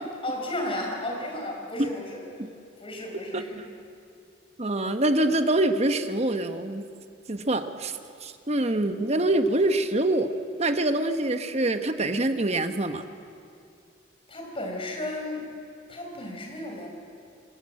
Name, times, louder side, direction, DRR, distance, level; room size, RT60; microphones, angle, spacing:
voice 1, 0.0-2.2 2.8-3.6 14.3-15.5 15.9-16.9, left 1 dB, 30° left, 1 dB, 4.9 m, -33 dB
voice 2, 4.6-6.9 7.3-10.3 10.6-13.0, right 1 dB, 35° right, 8 dB, 1.2 m, -25 dB
25.0 x 21.0 x 8.9 m, 2.4 s
head